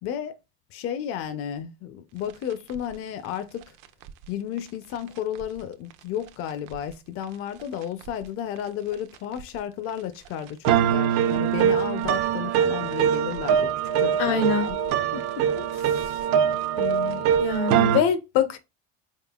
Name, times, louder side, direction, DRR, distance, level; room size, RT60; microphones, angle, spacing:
voice 1, 0.0-0.4 0.7-3.8 4.3-13.7 14.0-14.8 15.1-16.3 16.8-17.3, left 10 dB, 45° left, 0.5 m, -33 dB
sound 1, 2.7-2.8 4.0-4.1 5.4-5.5 6.7-6.8 8.0-8.1 9.3-9.4 10.6-18.0, right 9 dB, 65° right, 0.6 m, -23 dB
voice 2, 14.2-14.7 17.2-18.6, left 6 dB, 80° left, 0.9 m, -24 dB
4.3 x 3.6 x 2.3 m
cardioid pair, 150°, 31 cm